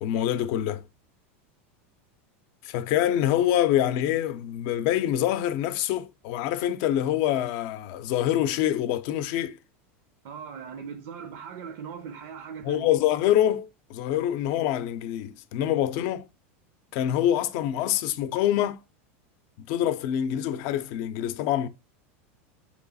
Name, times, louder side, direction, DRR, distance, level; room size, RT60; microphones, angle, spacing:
voice 1, 0.0-0.8 2.6-9.6 12.6-16.3 16.9-18.8 19.6-21.7, left 11 dB, 60° left, 0.5 m, -25 dB
voice 2, 10.2-12.9, right 7 dB, 65° right, 0.6 m, -39 dB
3.9 x 3.0 x 4.0 m
supercardioid pair, 130°, 7 cm